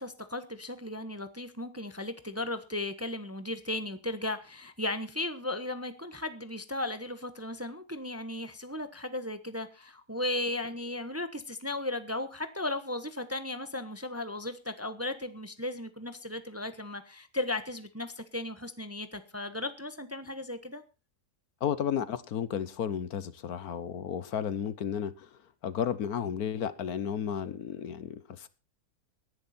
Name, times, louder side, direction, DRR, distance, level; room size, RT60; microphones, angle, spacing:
voice 1, 0.0-20.8, left 2 dB, 10° right, 1.0 m, -36 dB
voice 2, 21.6-28.5, left 8 dB, 70° left, 1.4 m, -33 dB
18.0 x 10.5 x 4.3 m
omnidirectional pair, 1.7 m